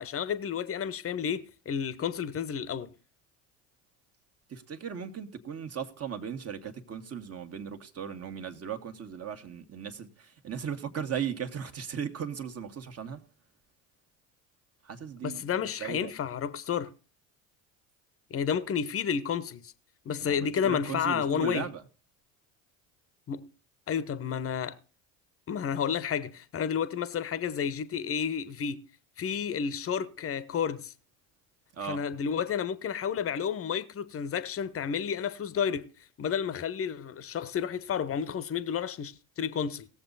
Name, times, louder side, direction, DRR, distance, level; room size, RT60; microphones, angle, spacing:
voice 1, 0.0-2.9 15.2-16.9 18.3-19.7 20.0-21.7 23.3-23.5 23.9-24.8 25.5-28.8 29.2-30.9 31.9-35.9 36.2-39.9, left 7 dB, 35° left, 1.0 m, -31 dB
voice 2, 4.5-13.2 14.8-16.1 20.2-21.8 31.7-32.0, right 7 dB, 35° right, 1.7 m, -37 dB
18.0 x 7.2 x 4.1 m
hypercardioid pair, 70°, 41 cm